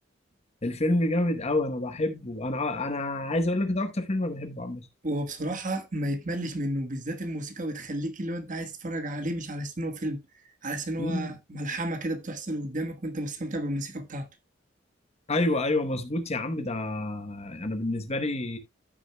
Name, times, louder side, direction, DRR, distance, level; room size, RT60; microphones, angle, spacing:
voice 1, 0.6-4.9 11.0-11.4 15.3-18.6, left 2 dB, 35° left, 1.0 m, -28 dB
voice 2, 5.0-10.2 10.6-14.3, right 1 dB, 45° right, 1.3 m, -32 dB
13.5 x 6.3 x 2.2 m
head